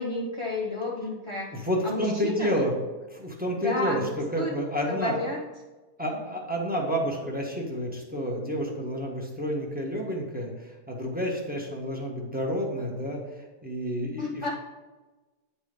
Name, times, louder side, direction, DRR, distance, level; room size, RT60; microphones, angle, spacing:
voice 1, 0.0-1.6 1.8-2.6 3.6-4.1 4.4-4.5 4.9-5.4 14.2-14.5, left 2 dB, 25° left, -3 dB, 0.6 m, -31 dB
voice 2, 1.5-2.7 3.1-5.1 6.0-14.4, equal, 5° right, -2 dB, 1.0 m, -30 dB
9.5 x 4.3 x 5.2 m, 1.2 s
omnidirectional pair, 1.8 m